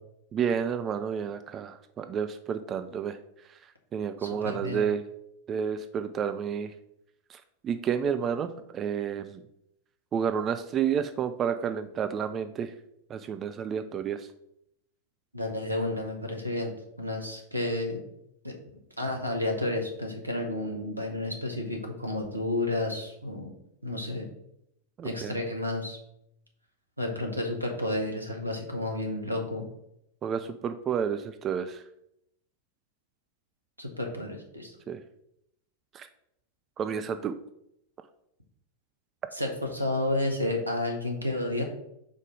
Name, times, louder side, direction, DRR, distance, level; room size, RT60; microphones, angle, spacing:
voice 1, 0.3-3.2 3.5-5.0 5.5-6.7 7.3-9.4 10.1-12.7 13.1-14.3 25.0-25.3 30.2-31.8 34.9-35.0 35.9-36.1 36.8-37.3, right 7 dB, 25° right, 10 dB, 0.4 m, -30 dB
voice 2, 4.2-4.8 15.3-16.7 17.0-18.0 18.4-18.5 19.0-23.5 23.8-24.3 25.0-26.0 27.0-29.7 33.8-34.7 39.3-41.6, left 1 dB, 85° right, 2 dB, 1.1 m, -31 dB
5.2 x 4.2 x 4.7 m, 0.77 s
figure-of-eight pair, 90°, 0 cm